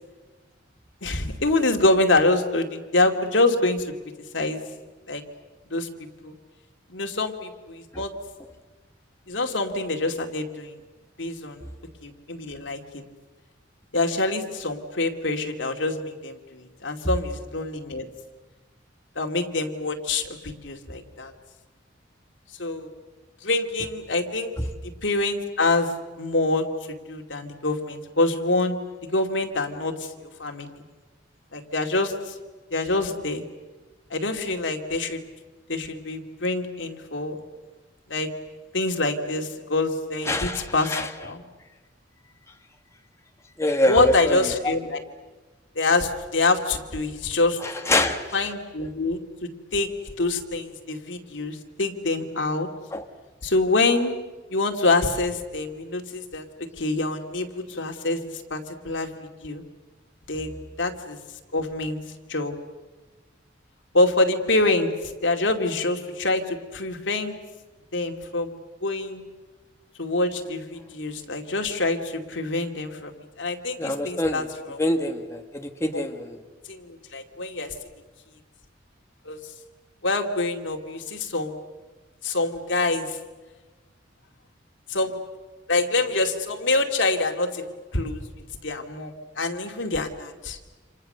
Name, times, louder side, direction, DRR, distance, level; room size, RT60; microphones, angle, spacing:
voice 1, 1.0-3.9 4.3-4.6 5.1-5.2 5.7-5.9 6.2-6.3 6.9-8.1 9.3-10.8 11.2-11.6 12.0-13.0 13.9-18.1 19.2-21.3 22.6-22.9 23.4-24.5 25.0-25.9 26.2-26.6 27.1-28.8 29.1-30.1 30.4-30.8 31.5-32.3 32.7-33.4 34.1-35.2 35.7-37.4 38.1-38.3 38.7-41.4 43.9-45.0 45.8-47.6 48.3-49.2 49.7-49.9 50.2-52.7 53.4-54.1 54.5-56.4 56.8-58.2 58.5-58.6 58.8-59.1 59.4-59.6 60.3-61.2 61.5-62.0 62.3-62.5 63.9-64.9 65.2-67.3 67.9-68.6 68.8-69.2 70.0-73.1 73.4-74.8 75.9-76.0 76.7-77.8 79.3-79.4 80.0-81.6 82.2-83.2 84.9-85.2 85.7-87.6 87.9-88.2 88.6-90.6, left 2 dB, 80° left, 4 dB, 2.4 m, -25 dB
voice 2, 40.2-41.1 43.6-44.5 47.6-48.5 52.9-53.0 73.8-74.5 74.8-76.4, left 1 dB, 15° left, 4 dB, 1.5 m, -25 dB
29.5 x 27.0 x 6.7 m, 1.3 s
head